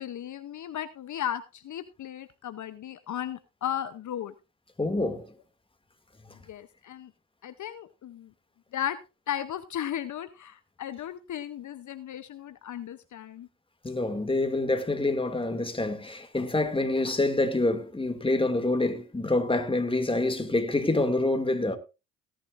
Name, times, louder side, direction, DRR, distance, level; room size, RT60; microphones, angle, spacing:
voice 1, 0.0-4.3 6.5-7.1 7.4-8.3 8.7-9.0 9.3-13.5, left 10 dB, 55° left, 0.8 m, -35 dB
voice 2, 4.8-5.3 13.8-21.8, left 2 dB, 15° left, 2.4 m, -26 dB
17.5 x 10.5 x 2.6 m
supercardioid pair, 60°, 36 cm